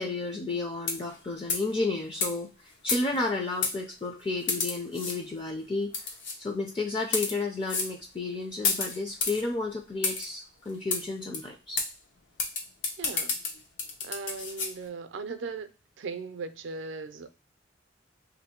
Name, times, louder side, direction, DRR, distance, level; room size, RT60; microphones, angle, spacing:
voice 1, 0.0-5.9 6.4-11.8, left 3 dB, 25° left, 0.4 m, -32 dB
sound 1, 0.8-1.2 1.5-1.7 2.2-2.3 2.9-3.3 3.6-3.8 4.5-5.2 5.9-6.4 7.0-7.4 7.7-7.9 8.6-9.4 10.0-10.3 10.9-11.0 11.3-11.4 11.8-11.9 12.4-14.7, left 4 dB, 75° left, 0.8 m, -30 dB
voice 2, 13.0-13.3 14.0-17.3, right 4 dB, 75° right, 0.4 m, -38 dB
2.9 x 2.7 x 4.2 m
head